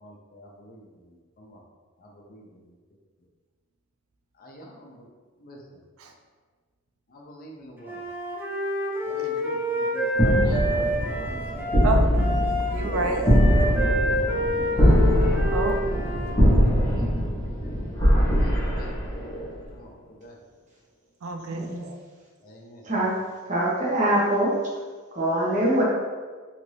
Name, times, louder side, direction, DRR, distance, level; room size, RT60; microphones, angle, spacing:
voice 1, 0.4-0.8 2.3-2.4 4.4-4.9 5.4-5.6 7.2-7.9 9.1-11.8 13.6-14.7 16.3-17.1 17.4-17.7 18.4-18.9 19.8-19.9 20.2-20.3 22.5-22.8, equal, 45° left, -1 dB, 0.5 m, -45 dB
Wind instrument woodwind instrument, 7.8-16.4, equal, 10° right, 0.4 m, -28 dB
sound 1, 10.1-19.6, equal, 25° left, 0.9 m, -22 dB
voice 2, 12.7-13.3 15.5-15.8 21.2-22.0, right 2 dB, 85° right, 3 dB, 0.4 m, -28 dB
voice 3, 21.5-21.9 22.8-23.1 23.4-24.5 25.1-25.8, right 1 dB, 35° right, -6 dB, 0.9 m, -23 dB
2.8 x 2.5 x 3.2 m, 1.5 s
head